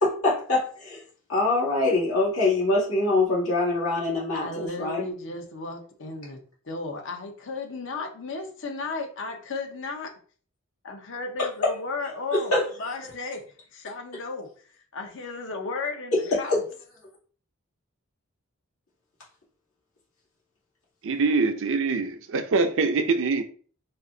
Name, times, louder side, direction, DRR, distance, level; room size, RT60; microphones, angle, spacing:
voice 1, 0.0-1.0 1.3-5.0 11.4-11.5 12.3-12.9 16.1-16.6, left 2 dB, 85° left, -6 dB, 2.1 m, -24 dB
voice 2, 4.3-10.1 10.8-12.5 12.8-13.4 13.7-14.5 14.9-16.6, left 3 dB, 65° left, 4 dB, 0.8 m, -34 dB
voice 3, 21.0-23.4, right 4 dB, 65° right, 8 dB, 0.5 m, -24 dB
4.2 x 2.5 x 3.8 m, 0.43 s
head